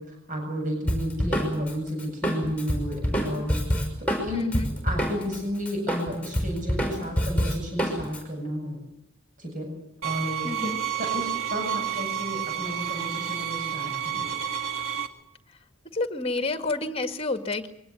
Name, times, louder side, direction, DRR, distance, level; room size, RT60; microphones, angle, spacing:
voice 1, 0.0-3.5 4.2-4.5 4.8-8.8 9.4-9.7 10.0-10.5 11.0-14.4, equal, 35° right, 2 dB, 7.9 m, -32 dB
Drum kit, 0.9-5.4 5.7-8.2, equal, 5° left, 5.7 m, -26 dB
voice 2, 4.3-4.7 10.4-10.8 15.9-17.7, left 2 dB, 25° left, 8 dB, 2.0 m, -29 dB
sound 1, 10.0-15.1, right 9 dB, 70° right, 2.2 m, -30 dB
23.5 x 18.5 x 9.6 m, 0.82 s
head